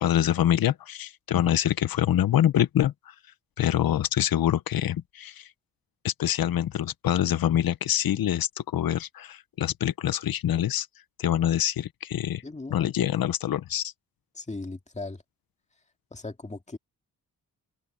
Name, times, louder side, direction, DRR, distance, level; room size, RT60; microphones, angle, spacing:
voice 1, 0.0-3.1 3.6-5.5 6.0-10.9 11.2-12.4 12.7-13.9, left 11 dB, 90° left, 0.7 m, -25 dB
voice 2, 12.4-12.9 14.3-15.2 16.1-16.8, left 2 dB, 20° left, 2.1 m, -38 dB
open air
wide cardioid pair, 95°, 35 cm